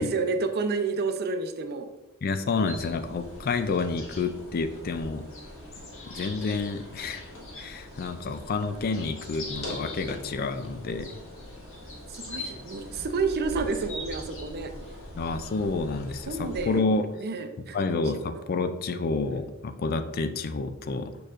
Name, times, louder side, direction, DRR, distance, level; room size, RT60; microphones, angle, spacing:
voice 1, 0.0-1.9 12.1-14.7 16.3-16.8 17.2-18.0 18.3-18.4, right 4 dB, 45° right, 7 dB, 0.6 m, -30 dB
voice 2, 2.2-5.3 6.0-7.2 7.6-11.2 15.1-17.1 17.7-21.2, left 3 dB, 45° left, 10 dB, 0.4 m, -29 dB
sound 1, 2.7-16.8, left 1 dB, 65° left, 1.6 m, -41 dB
6.7 x 6.2 x 2.5 m, 1.0 s
head